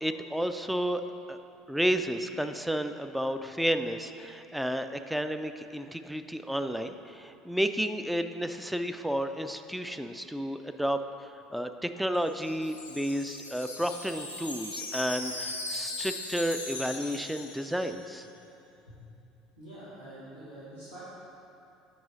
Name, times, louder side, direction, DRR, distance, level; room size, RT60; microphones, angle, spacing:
voice 1, 0.0-1.0 1.3-1.4 1.7-11.0 11.5-18.2, equal, 5° right, 8 dB, 0.4 m, -31 dB
Wind chime, 12.1-18.1, left 2 dB, 90° left, 0.6 m, -39 dB
voice 2, 19.6-21.0, right 1 dB, 80° right, -12 dB, 1.7 m, -46 dB
7.6 x 5.4 x 4.1 m, 2.8 s
figure-of-eight pair, 65°, 0 cm